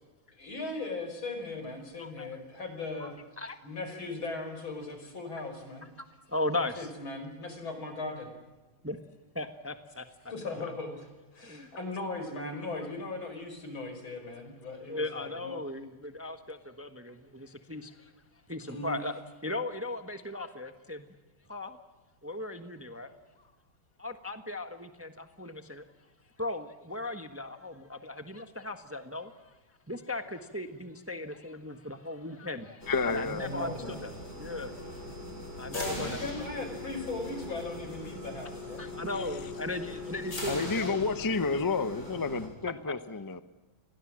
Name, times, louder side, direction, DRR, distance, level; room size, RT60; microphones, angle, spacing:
voice 1, 0.4-3.1 3.6-5.9 6.8-8.3 10.3-11.0 11.3-15.6 18.6-19.0 33.4-34.1 35.7-38.8, left 2 dB, 85° left, 6 dB, 5.8 m, -38 dB
voice 2, 2.0-2.3 3.0-3.1 3.4-3.6 6.0-6.9 8.8-9.0 9.3-10.3 11.4-11.8 12.8-12.9 14.9-18.1 18.5-19.1 19.4-21.1 21.5-21.8 22.2-23.1 24.0-25.8 26.4-29.6 29.9-34.1 34.4-34.7 35.6-36.2 38.8-41.0, left 2 dB, 10° right, 8 dB, 1.1 m, -37 dB
sound 1, 32.8-42.5, left 2 dB, 55° left, 6.7 m, -40 dB
voice 3, 32.9-33.4 35.7-36.0 39.1-39.4 40.5-43.4, left 4 dB, 35° left, 12 dB, 0.3 m, -31 dB
29.5 x 22.5 x 7.6 m, 1.2 s
omnidirectional pair, 2.2 m